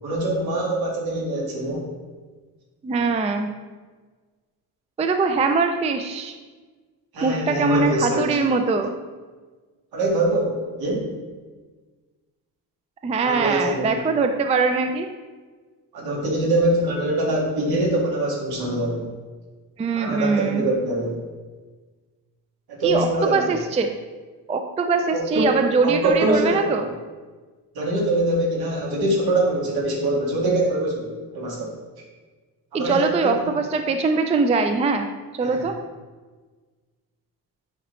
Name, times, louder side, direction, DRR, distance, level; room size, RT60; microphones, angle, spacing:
voice 1, 0.0-1.9 7.1-8.3 9.9-11.1 13.2-13.9 15.9-19.0 20.0-21.2 22.7-23.4 25.1-25.5 25.8-26.7 27.8-31.7 32.7-33.5 35.4-35.6, right 1 dB, 70° right, -2 dB, 2.0 m, -23 dB
voice 2, 2.8-3.5 5.0-6.3 7.2-8.9 13.0-15.1 19.8-20.7 22.8-23.9 24.5-26.8 32.7-35.1 35.3-35.8, right 4 dB, 20° right, 6 dB, 0.3 m, -22 dB
8.8 x 5.1 x 3.1 m, 1.4 s
cardioid pair, 145°, 38 cm